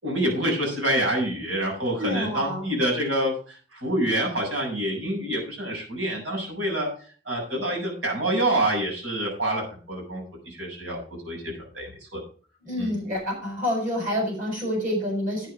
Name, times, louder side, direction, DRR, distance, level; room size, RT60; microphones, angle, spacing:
voice 1, 0.0-6.9 7.3-11.4 11.7-12.2 12.8-12.9, right 1 dB, 90° right, -1 dB, 7.1 m, -27 dB
voice 2, 2.0-2.7 12.6-15.5, left 1 dB, 45° right, 0 dB, 7.4 m, -28 dB
10.5 x 9.4 x 4.9 m, 0.40 s
head